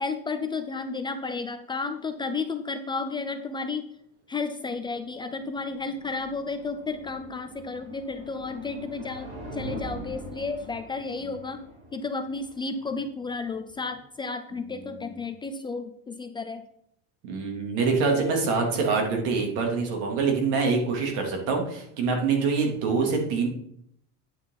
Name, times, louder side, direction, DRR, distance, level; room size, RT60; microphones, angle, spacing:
voice 1, 0.0-3.9 4.3-11.6 11.9-16.6, left 4 dB, 15° left, 7 dB, 0.4 m, -32 dB
sound 1, 5.1-14.0, equal, 35° right, 2.9 m, -43 dB
voice 2, 17.2-23.5, right 4 dB, 80° right, 1 dB, 3.2 m, -25 dB
10.5 x 8.9 x 4.1 m, 0.71 s
cardioid pair, 170°, 35 cm